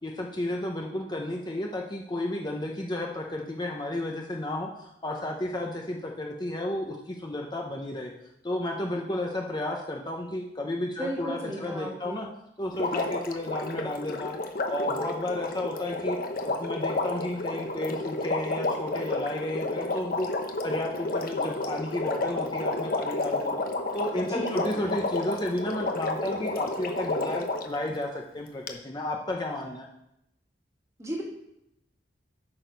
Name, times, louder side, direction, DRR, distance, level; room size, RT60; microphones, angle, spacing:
voice 1, 0.0-8.1 8.4-12.3 12.6-14.4 14.7-16.2 16.4-20.3 20.6-23.6 23.9-29.9, left 1 dB, 25° left, 1 dB, 0.8 m, -32 dB
voice 2, 10.8-12.2 24.3-24.9 31.0-31.2, right 1 dB, 15° right, -1 dB, 1.7 m, -35 dB
Water, 12.7-27.8 28.7-28.8, left 2 dB, 50° left, 0.9 m, -31 dB
8.7 x 6.4 x 5.2 m, 0.83 s
head